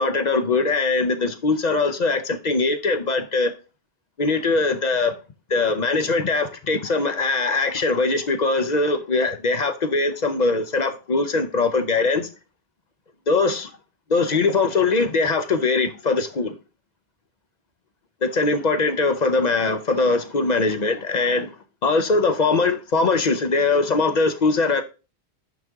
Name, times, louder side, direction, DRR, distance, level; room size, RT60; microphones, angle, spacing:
voice 1, 0.0-3.5 4.2-5.1 5.5-12.3 13.3-13.7 14.1-16.6 18.2-21.5 21.8-24.8, left 3 dB, 45° left, 0.7 m, -21 dB
6.3 x 5.1 x 3.5 m
omnidirectional pair, 1.1 m